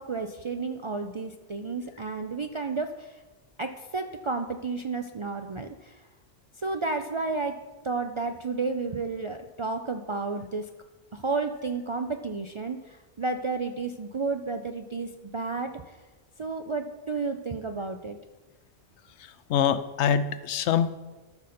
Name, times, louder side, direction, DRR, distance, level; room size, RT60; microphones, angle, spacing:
voice 1, 0.0-3.2 3.6-6.0 6.6-7.6 7.8-10.7 11.1-16.0 16.4-18.2, right 4 dB, 55° right, 6 dB, 0.3 m, -32 dB
voice 2, 19.2-20.9, left 8 dB, 90° left, 13 dB, 0.9 m, -25 dB
13.0 x 6.4 x 4.2 m, 1.2 s
omnidirectional pair, 1.1 m